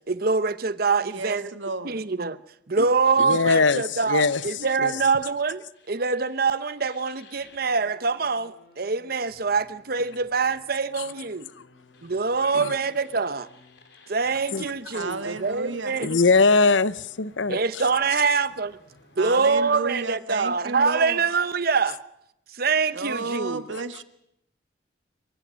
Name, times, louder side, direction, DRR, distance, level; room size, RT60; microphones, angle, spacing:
voice 1, 0.1-1.5 1.8-2.4 2.7-11.5 12.0-13.5 14.1-16.2 17.5-18.8 19.2-22.0 22.5-23.6, right 4 dB, 50° right, 0.9 m, -24 dB
voice 2, 1.0-2.0 2.8-2.9 3.3-3.4 14.9-15.9 19.2-21.2 22.9-24.0, right 3 dB, 90° right, 1.6 m, -32 dB
voice 3, 3.2-4.4 4.8-5.0 12.5-12.7 14.5-14.6 16.0-17.6, left 4 dB, 85° left, 0.8 m, -21 dB
sound 1, 5.7-19.2, left 2 dB, 65° left, 3.7 m, -56 dB
24.0 x 23.0 x 6.3 m
head